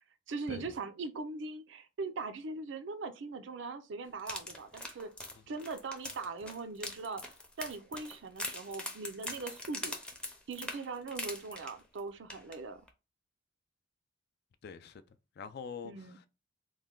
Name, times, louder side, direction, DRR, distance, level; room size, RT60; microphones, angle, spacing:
voice 1, 0.3-5.1 5.5-10.0 10.5-12.8 15.8-16.2, right 4 dB, 70° right, 0.5 m, -41 dB
sound 1, 4.2-12.0 12.3-12.5 12.9-13.0, left 1 dB, 5° left, 0.5 m, -42 dB
voice 2, 14.6-15.0 15.4-16.3, left 6 dB, 55° left, 0.4 m, -44 dB
3.2 x 2.2 x 3.6 m
head